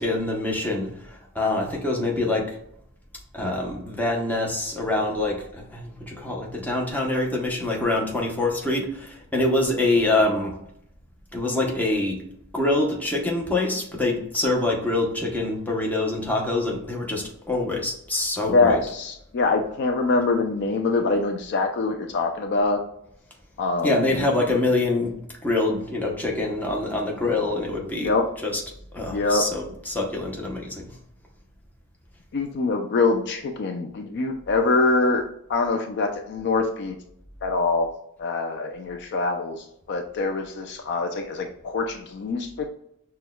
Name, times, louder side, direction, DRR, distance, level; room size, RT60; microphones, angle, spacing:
voice 1, 0.0-2.6 3.3-10.6 11.3-12.2 12.5-18.8 23.8-25.1 25.4-28.1 28.4-28.6 28.9-30.9, left 2 dB, 10° left, -2 dB, 0.7 m, -25 dB
voice 2, 18.5-22.8 23.6-24.1 28.0-28.2 29.1-29.4 32.3-35.2 35.5-37.0 37.4-37.9 38.2-42.7, left 3 dB, 55° left, 5 dB, 0.4 m, -24 dB
6.0 x 2.2 x 2.2 m, 0.74 s
head